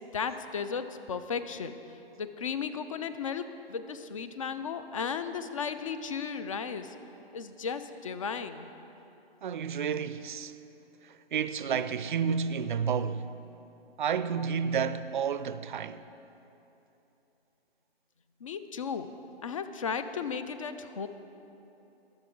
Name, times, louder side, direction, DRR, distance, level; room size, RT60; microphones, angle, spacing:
voice 1, 0.1-1.8 2.2-6.9 7.3-8.7 18.4-19.1 19.4-21.1, left 6 dB, 35° left, 0.5 m, -35 dB
voice 2, 9.4-10.5 11.3-13.3 14.0-16.0, right 7 dB, 50° right, 0.5 m, -30 dB
21.0 x 7.0 x 3.8 m
figure-of-eight pair, 140°, 32 cm